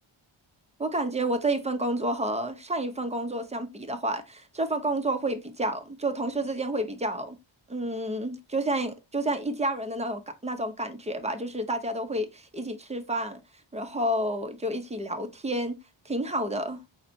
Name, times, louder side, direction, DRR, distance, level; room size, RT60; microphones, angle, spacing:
voice 1, 0.8-7.4 7.7-13.4 13.7-15.8 16.1-16.8, right 1 dB, 15° right, 0.5 m, -30 dB
4.3 x 4.1 x 2.6 m
wide cardioid pair, 130°, 49 cm